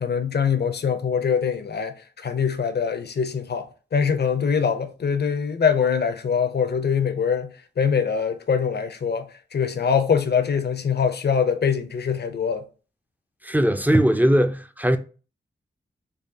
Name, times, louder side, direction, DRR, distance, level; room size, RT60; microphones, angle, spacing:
voice 1, 0.0-12.6, left 6 dB, 60° left, 0.6 m, -23 dB
voice 2, 13.4-15.0, equal, 10° right, 0.4 m, -19 dB
4.8 x 2.3 x 2.7 m
cardioid pair, 55°, 19 cm